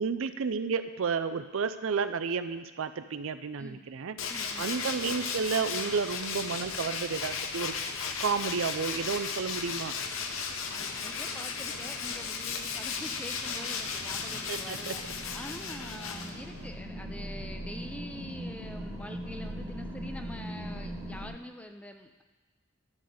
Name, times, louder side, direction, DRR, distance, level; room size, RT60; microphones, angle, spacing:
voice 1, 0.0-4.2 4.6-7.9 8.2-9.9 14.5-14.9, right 5 dB, 70° right, 11 dB, 0.5 m, -31 dB
Tools, 4.2-16.7, left 5 dB, 70° left, 0.8 m, -35 dB
voice 2, 4.3-4.7 10.7-22.2, left 1 dB, 5° left, 6 dB, 0.4 m, -45 dB
sound 1, 6.0-21.3, equal, 15° right, 1.9 m, -43 dB
11.0 x 4.1 x 7.8 m, 1.2 s
head